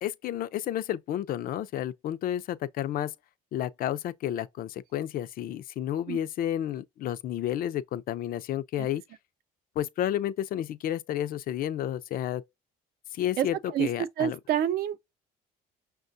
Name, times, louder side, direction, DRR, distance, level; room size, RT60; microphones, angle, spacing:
voice 1, 0.0-3.1 3.5-9.0 9.8-12.4 13.1-14.4, left 11 dB, 60° left, 0.4 m, -31 dB
voice 2, 13.7-15.0, right 10 dB, 70° right, 0.6 m, -27 dB
5.7 x 2.2 x 2.5 m
cardioid pair, 110°, 17 cm